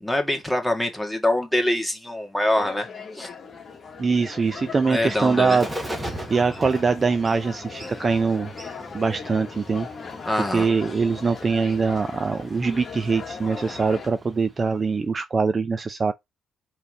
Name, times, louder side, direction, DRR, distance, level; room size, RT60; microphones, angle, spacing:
voice 1, 0.0-2.9 3.1-3.3 4.9-5.6 10.2-10.7, left 1 dB, ahead, 2.0 m, -24 dB
sound 1, 2.5-14.1, left 5 dB, 45° left, 1.6 m, -39 dB
Bird, 3.5-15.0, right 1 dB, 15° right, 1.6 m, -40 dB
voice 2, 4.0-5.7 6.3-8.5 8.9-9.9 10.5-16.1, right 4 dB, 35° right, 0.5 m, -23 dB
5.6 x 3.4 x 5.4 m
cardioid pair, 105°, 0 cm